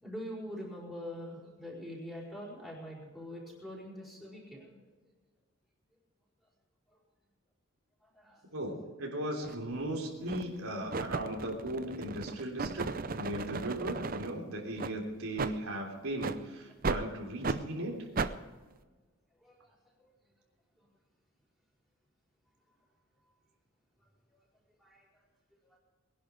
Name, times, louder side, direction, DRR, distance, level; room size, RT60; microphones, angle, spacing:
voice 1, 0.0-4.7 6.9-7.0 8.0-8.4 17.1-17.2 19.4-20.1 20.8-20.9 24.8-25.2 25.6-25.8, equal, ahead, -4 dB, 4.9 m, -44 dB
voice 2, 8.5-18.0, right 1 dB, 85° right, 0 dB, 3.4 m, -37 dB
sound 1, 9.4-9.6 10.3-10.6 10.9-14.3 14.8-14.9 15.4-15.5 16.2-16.4 16.8-17.0 17.4-17.6 18.2-18.3, right 4 dB, 40° right, 0.6 m, -35 dB
21.5 x 11.0 x 5.1 m, 1.3 s
head